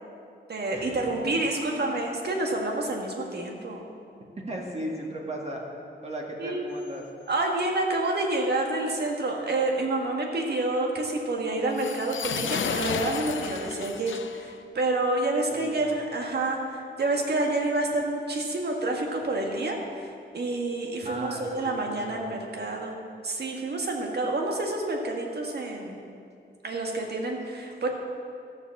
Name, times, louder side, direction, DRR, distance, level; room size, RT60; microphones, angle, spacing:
voice 1, 0.5-3.8 6.4-6.6 7.3-20.1 20.3-23.0 23.2-26.0 26.6-27.9, right 2 dB, 60° right, 1 dB, 1.9 m, -28 dB
voice 2, 4.5-5.6 6.0-7.0 15.5-15.9 21.0-22.2, right 1 dB, 35° right, -2 dB, 1.9 m, -36 dB
sound 1, 11.7-14.6, left 7 dB, 85° left, 0.6 m, -32 dB
13.5 x 7.3 x 7.3 m, 2.4 s
wide cardioid pair, 125°, 20 cm